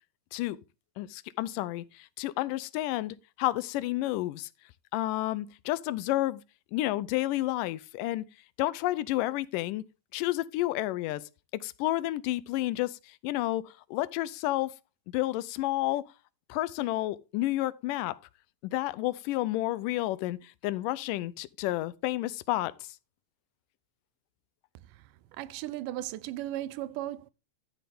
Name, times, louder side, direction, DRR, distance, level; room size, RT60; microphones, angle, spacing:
voice 1, 1.0-4.5 4.9-6.4 6.7-8.3 8.6-9.8 10.1-14.7 15.1-16.1 16.5-18.2 18.6-23.0, left 16 dB, 90° left, 2.3 m, -31 dB
voice 2, 25.4-27.3, right 14 dB, 85° right, 2.2 m, -36 dB
12.5 x 6.8 x 3.6 m
omnidirectional pair, 3.7 m